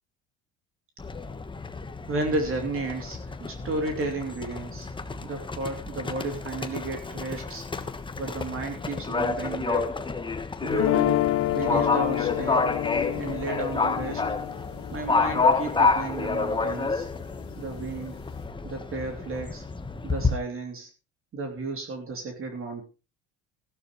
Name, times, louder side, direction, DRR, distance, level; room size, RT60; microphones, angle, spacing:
Livestock farm animals working animals, 1.0-20.3, left 4 dB, 15° left, 1.3 m, -29 dB
voice 1, 2.1-4.9 5.2-7.7 8.2-9.9 10.6-11.2 11.5-12.6 13.1-14.3 14.9-17.1 17.6-18.2 18.6-19.7 20.0-20.9 21.3-22.8, right 2 dB, 40° right, 4 dB, 3.1 m, -33 dB
sound 1, 10.7-16.8, left 16 dB, 45° left, 0.5 m, -29 dB
15.5 x 11.5 x 3.2 m, 0.30 s
supercardioid pair, 105°, 33 cm